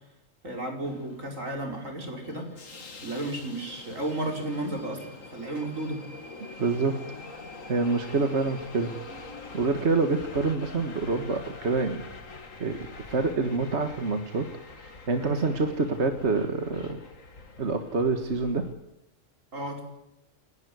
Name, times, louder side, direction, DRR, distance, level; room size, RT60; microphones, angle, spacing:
voice 1, 0.4-2.6 3.0-6.0 19.5-19.8, right 1 dB, 85° right, 2 dB, 5.4 m, -33 dB
Subway metro underground, 0.8-18.7, left 3 dB, 85° left, 2.5 m, -45 dB
voice 2, 6.6-7.2 7.7-9.0 9.5-12.1 12.6-17.0 17.6-18.7, right 3 dB, 60° right, 6 dB, 1.9 m, -27 dB
29.5 x 11.5 x 9.4 m, 0.94 s
omnidirectional pair, 1.3 m